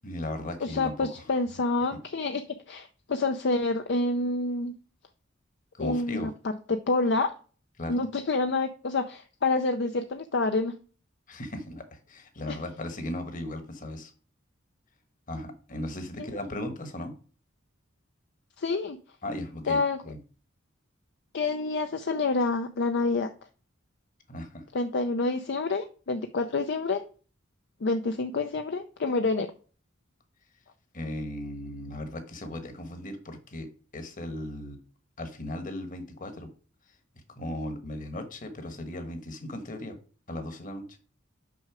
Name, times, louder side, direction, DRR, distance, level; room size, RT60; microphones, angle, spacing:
voice 1, 0.0-1.2 1.9-2.0 5.8-6.3 7.8-8.0 11.3-14.1 15.3-17.1 19.2-20.2 24.3-24.6 30.9-34.8 35.2-36.5 37.3-40.0 40.3-40.8, left 1 dB, 40° left, 7 dB, 1.3 m, -37 dB
voice 2, 0.6-4.7 5.8-6.3 6.7-7.3 7.9-10.7 12.5-12.6 16.2-16.3 18.6-19.0 19.7-20.0 21.3-23.3 24.7-27.0 27.8-29.5, left 3 dB, 60° left, 7 dB, 0.5 m, -28 dB
6.3 x 5.6 x 4.9 m, 0.39 s
head